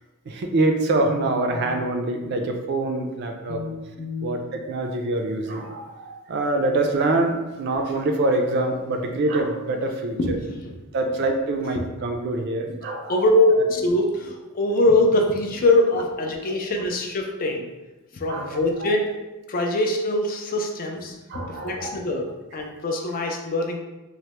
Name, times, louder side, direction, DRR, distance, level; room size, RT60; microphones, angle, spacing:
voice 1, 0.3-3.6 4.2-10.2 10.9-13.2 16.5-16.6 18.3-18.9 21.3-22.0, right 2 dB, 50° right, 4 dB, 0.3 m, -25 dB
voice 2, 3.5-4.3 10.2-10.7 12.7-12.8 13.1-17.7 18.1-19.1 19.5-23.8, left 2 dB, 40° left, 2 dB, 0.4 m, -23 dB
3.2 x 2.0 x 2.9 m, 1.1 s
head